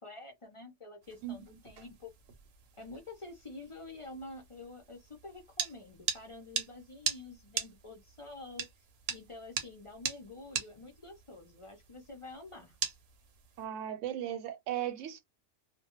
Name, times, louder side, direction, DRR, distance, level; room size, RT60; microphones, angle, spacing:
voice 1, 0.0-2.1 2.8-8.6 9.1-12.8, left 2 dB, 40° left, 0.5 m, -48 dB
sound 1, 1.0-13.7, right 7 dB, 65° right, 0.8 m, -41 dB
voice 2, 13.6-15.2, right 11 dB, 90° right, 0.9 m, -37 dB
2.2 x 2.1 x 2.9 m
omnidirectional pair, 1.2 m